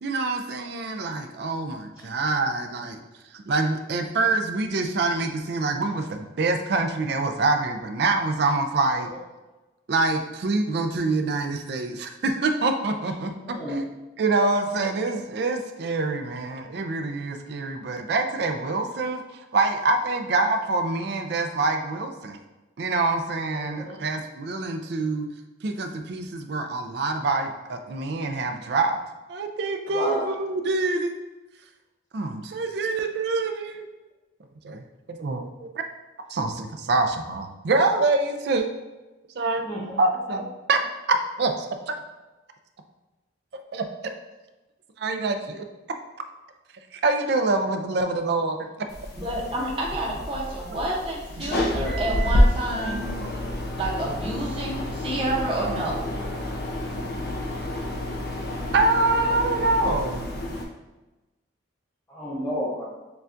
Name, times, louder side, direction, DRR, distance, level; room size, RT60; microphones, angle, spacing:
voice 1, 0.0-3.0 3.3-9.1 9.9-13.5 14.2-19.2 19.5-22.4 22.8-25.3 25.6-29.0 29.3-31.1 32.1-33.9 34.6-34.8 35.1-35.8 36.3-38.7 39.4-39.6 40.0-40.4 40.7-40.8 41.1-42.0 43.7-43.9 45.0-45.6 46.9-48.6 58.7-60.3, right 3 dB, 55° right, 6 dB, 0.4 m, -25 dB
voice 2, 13.4-13.8 23.5-24.0 29.9-30.2 39.6-40.0 62.1-62.8, equal, 15° left, -9 dB, 0.7 m, -31 dB
sound 1, 48.9-60.6, left 1 dB, 50° left, 0.6 m, -28 dB
voice 3, 49.2-53.1 53.8-56.1, right 1 dB, 30° right, -3 dB, 0.7 m, -29 dB
6.7 x 2.3 x 2.5 m, 1.1 s
head